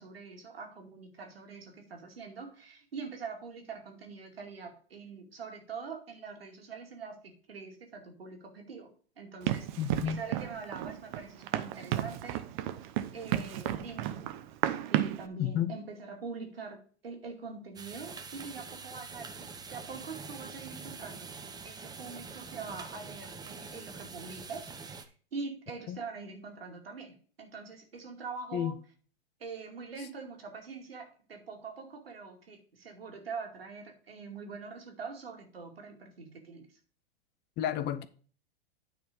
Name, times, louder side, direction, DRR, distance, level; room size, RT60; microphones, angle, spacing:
voice 1, 0.0-12.5 13.1-14.3 14.9-16.8 17.0-21.3 21.6-28.8 29.4-36.7, right 4 dB, 90° right, 2.4 m, -44 dB
Run, 9.5-15.3, right 12 dB, 55° right, 0.9 m, -33 dB
voice 2, 9.8-10.2 15.4-15.7 25.9-26.0 28.5-28.7 37.6-38.1, left 10 dB, 35° left, 0.8 m, -31 dB
sound 1, 17.8-25.1, right 5 dB, 15° right, 0.9 m, -45 dB
9.5 x 4.4 x 5.3 m
hypercardioid pair, 105°, 29 cm